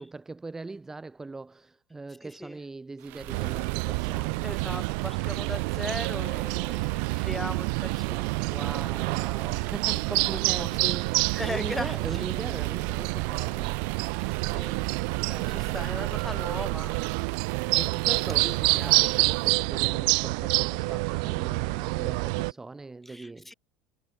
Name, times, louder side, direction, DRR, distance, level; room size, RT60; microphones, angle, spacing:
voice 1, 0.0-4.5 8.5-13.9 15.2-15.9 17.7-23.5, right 3 dB, 10° right, 2.2 m, -40 dB
voice 2, 2.2-2.6 4.4-9.1 10.6-11.0 11.3-12.2 14.2-14.9 15.2-17.1 18.8-19.1 23.0-23.5, left 1 dB, 5° left, 6.4 m, -39 dB
sound 1, 3.0-19.7, right 20 dB, 60° right, 1.4 m, -39 dB
sound 2, 3.3-22.5, right 31 dB, 75° right, 0.6 m, -28 dB
supercardioid pair, 125°, 4 cm